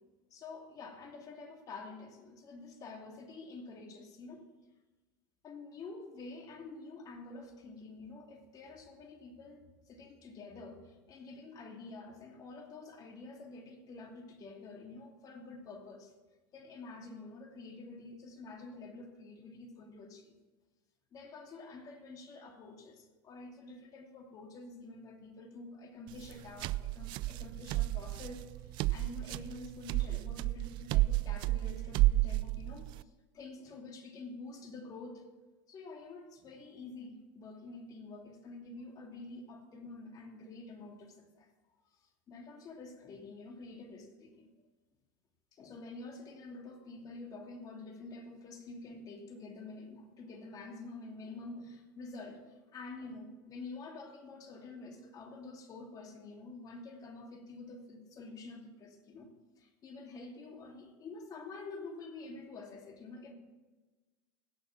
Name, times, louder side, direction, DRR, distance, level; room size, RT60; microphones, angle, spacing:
voice 1, 0.3-4.4 5.4-16.1 16.5-20.3 21.1-35.2 35.7-41.5 42.3-44.5 45.5-63.3, left 3 dB, 40° left, 2 dB, 2.7 m, -48 dB
sound 1, 26.1-33.0, right 18 dB, 50° right, 0.4 m, -32 dB
16.5 x 6.4 x 7.4 m, 1.2 s
supercardioid pair, 105°, 10 cm